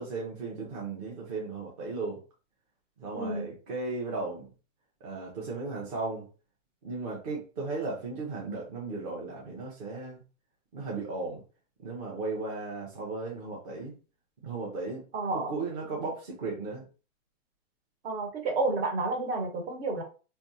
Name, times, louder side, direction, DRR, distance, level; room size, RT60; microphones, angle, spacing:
voice 1, 0.0-2.2 3.0-4.5 5.0-6.3 6.8-10.2 10.7-11.4 11.8-13.9 14.4-15.0 15.3-16.9, right 3 dB, 30° right, -3 dB, 0.8 m, -36 dB
voice 2, 3.1-3.5 15.1-15.5 18.0-20.0, right 3 dB, 55° right, 2 dB, 1.4 m, -30 dB
3.4 x 2.7 x 2.7 m, 0.34 s
hypercardioid pair, 165°, 39 cm